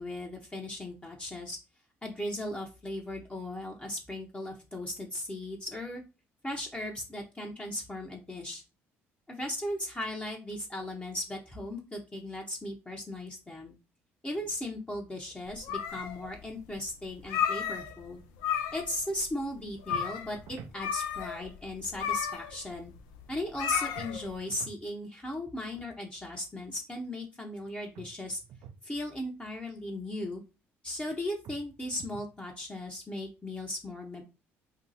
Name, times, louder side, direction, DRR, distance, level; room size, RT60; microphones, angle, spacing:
voice 1, 0.0-1.6 2.0-6.0 6.4-8.6 9.3-13.7 14.2-18.2 18.7-22.9 23.3-28.4 28.8-30.4 30.8-34.2, left 1 dB, 20° left, -1 dB, 0.8 m, -37 dB
sound 1, 15.5-16.4 16.7-16.8 17.2-18.1 18.4-19.0 19.3-19.4 19.8-20.3 20.8-24.3, left 8 dB, 80° left, 0.4 m, -33 dB
sound 2, 19.9-20.8 24.0-24.8 27.9-28.8 31.4-32.4, right 7 dB, 65° right, 0.4 m, -48 dB
2.7 x 2.2 x 4.0 m, 0.29 s
supercardioid pair, 60°, 6 cm